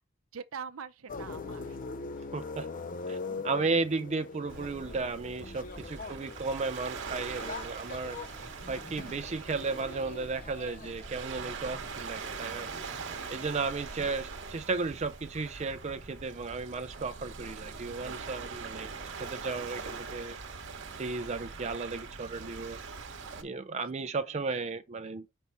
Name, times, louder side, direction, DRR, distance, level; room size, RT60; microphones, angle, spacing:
voice 1, 0.3-1.8 5.9-6.3 13.0-13.5 23.7-24.4, right 6 dB, 75° right, 0.7 m, -45 dB
sound 1, 1.1-10.9, left 4 dB, 40° left, 0.5 m, -42 dB
voice 2, 2.3-2.7 3.1-12.7 13.3-18.9 19.2-20.3 21.0-22.8 23.4-25.3, right 3 dB, 30° right, 0.4 m, -34 dB
Waves surf, 4.5-23.4, right 4 dB, 60° right, 1.1 m, -42 dB
sound 2, 7.2-14.1, equal, 5° left, 0.8 m, -55 dB
5.7 x 5.4 x 4.6 m
head